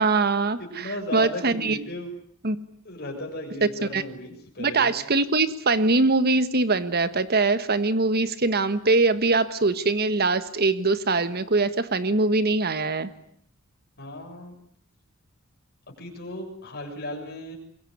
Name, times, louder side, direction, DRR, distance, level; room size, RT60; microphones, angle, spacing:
voice 1, 0.0-1.8 2.4-2.6 3.9-4.0 4.6-13.1, right 3 dB, 45° right, 13 dB, 1.5 m, -22 dB
voice 2, 0.8-2.1 2.9-4.9 14.0-14.5 16.0-17.6, left 1 dB, 45° left, 2 dB, 7.0 m, -35 dB
25.5 x 22.0 x 9.6 m, 0.66 s
head